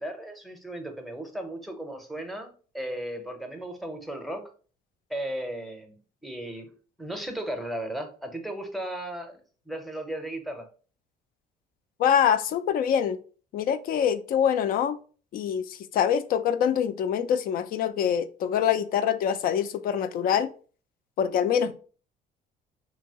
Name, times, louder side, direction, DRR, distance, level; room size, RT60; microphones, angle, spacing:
voice 1, 0.0-4.5 5.1-6.0 6.2-6.7 7.0-9.4 9.7-10.7, right 1 dB, ahead, 5 dB, 0.6 m, -35 dB
voice 2, 12.0-13.2 13.5-15.0 15.3-20.5 21.2-21.7, left 8 dB, 60° left, 12 dB, 0.4 m, -25 dB
2.8 x 2.7 x 2.8 m, 0.39 s
cardioid pair, 110°, 17 cm